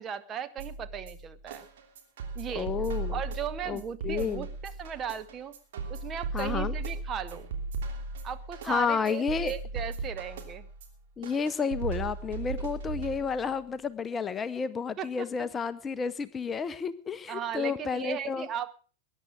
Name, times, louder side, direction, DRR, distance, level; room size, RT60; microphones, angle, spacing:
voice 1, 0.0-1.6 2.3-2.7 3.1-5.5 5.9-7.5 8.2-10.7 15.0-15.5 17.3-18.7, right 8 dB, 25° right, 10 dB, 1.1 m, -37 dB
sound 1, 0.6-13.6, right 3 dB, 55° right, 3.0 m, -37 dB
voice 2, 2.5-3.2 3.7-4.5 6.3-6.7 8.6-9.5 11.2-18.5, left 6 dB, 20° left, 14 dB, 0.7 m, -31 dB
20.5 x 10.5 x 5.0 m, 0.40 s
figure-of-eight pair, 90°, 0 cm